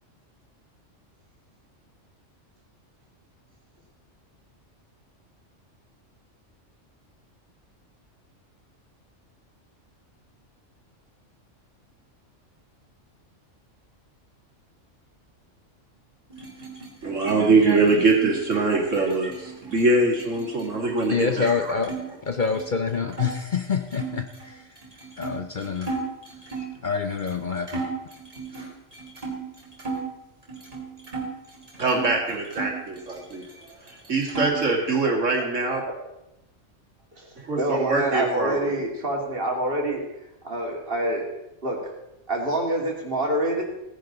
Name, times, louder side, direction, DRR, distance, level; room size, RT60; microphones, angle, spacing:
sound 1, 16.3-22.0 22.3-23.3 23.9-26.8 27.3-27.4 27.7-30.1 30.5-32.1 32.5-33.6 33.9-34.8, right 4 dB, 30° right, 2.9 m, -36 dB
voice 1, 17.0-21.8 31.8-33.5 33.8-35.8 37.5-38.8, right 3 dB, 75° right, 0 dB, 2.7 m, -23 dB
voice 2, 21.1-21.9 22.2-24.7 25.2-25.9 26.8-27.9, left 5 dB, 45° left, 6 dB, 0.8 m, -26 dB
voice 3, 37.2-40.0 40.4-41.3 41.6-41.9 42.3-43.6, right 1 dB, 45° right, 0 dB, 2.7 m, -26 dB
17.5 x 10.0 x 3.9 m, 0.90 s
omnidirectional pair, 1.3 m